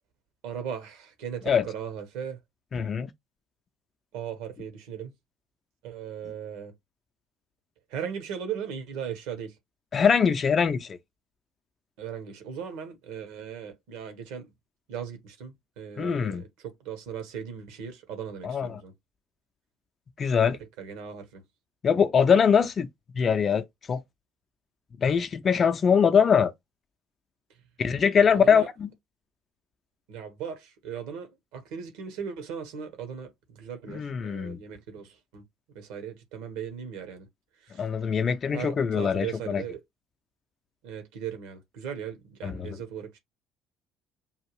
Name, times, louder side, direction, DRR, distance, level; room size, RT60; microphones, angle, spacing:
voice 1, 0.4-2.4 4.1-5.1 5.8-6.7 7.9-9.6 12.0-14.5 14.9-18.9 20.8-21.4 28.1-28.7 30.1-35.4 35.7-37.3 37.6-37.9 38.5-39.8 40.8-43.2, right 8 dB, 70° right, 1.1 m, -38 dB
voice 2, 2.7-3.1 9.9-11.0 16.0-16.4 18.4-18.7 20.2-20.6 21.8-22.9 23.1-24.0 25.0-26.5 27.8-28.9 33.9-34.6 37.8-39.6 42.4-42.7, left 6 dB, 40° left, 0.5 m, -23 dB
5.5 x 2.5 x 3.1 m
figure-of-eight pair, 55°, 0 cm